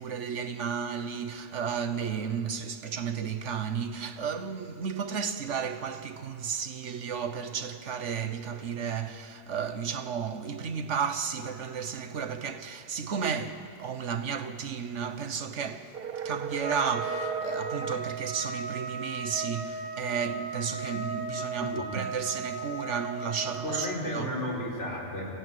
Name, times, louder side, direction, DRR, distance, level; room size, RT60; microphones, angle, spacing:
voice 1, 0.0-15.9 16.2-24.3, right 7 dB, 85° right, 1.4 m, -33 dB
sound 1, 15.9-18.1, right 7 dB, 60° right, 0.9 m, -36 dB
Trumpet, 16.6-23.9, right 3 dB, 20° right, 2.7 m, -36 dB
voice 2, 23.6-25.3, left 1 dB, 85° left, 4.8 m, -33 dB
26.0 x 16.0 x 9.2 m
omnidirectional pair, 1.2 m